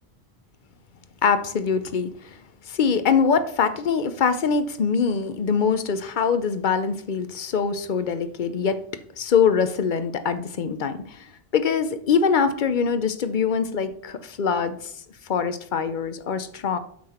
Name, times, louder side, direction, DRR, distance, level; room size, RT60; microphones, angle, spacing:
voice 1, 1.2-2.4 2.7-8.8 9.2-14.8 15.3-16.8, left 6 dB, 55° left, 11 dB, 0.8 m, -23 dB
8.6 x 5.8 x 4.3 m, 0.64 s
omnidirectional pair, 1.0 m